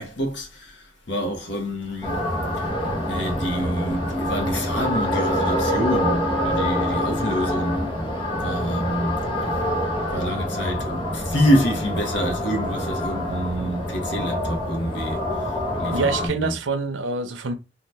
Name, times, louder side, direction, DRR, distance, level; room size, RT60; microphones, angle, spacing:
voice 1, 0.0-2.7 3.1-7.9 8.3-9.2 10.1-16.6, equal, 65° left, 0.9 m, -27 dB
sound 1, 2.0-16.3, left 1 dB, 25° left, 0.8 m, -26 dB
sound 2, 2.1-7.9, left 1 dB, 30° right, 0.9 m, -33 dB
voice 2, 15.9-17.5, right 4 dB, 90° right, 0.6 m, -25 dB
2.7 x 2.3 x 3.3 m
head